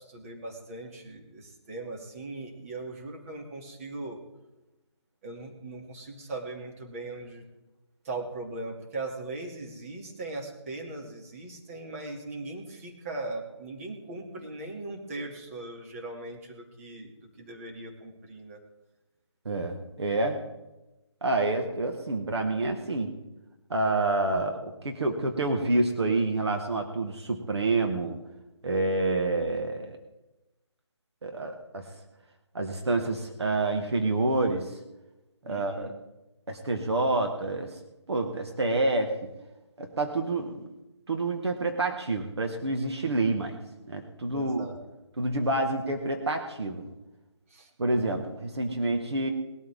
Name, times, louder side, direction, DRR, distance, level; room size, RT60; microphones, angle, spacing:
voice 1, 0.0-4.2 5.2-7.4 8.0-17.1 17.4-18.6 35.4-35.9 44.3-44.7 47.5-47.7, right 2 dB, 30° right, 0 dB, 2.6 m, -39 dB
voice 2, 19.5-20.4 21.2-23.1 23.7-28.1 28.6-30.0 31.2-31.9 32.5-34.8 35.4-35.9 36.5-37.8 38.1-39.1 39.8-40.6 41.1-43.6 43.9-44.7 45.2-46.9 47.8-49.3, right 2 dB, 65° right, 4 dB, 1.8 m, -28 dB
20.0 x 12.5 x 3.7 m, 1.0 s
figure-of-eight pair, 155°, 15 cm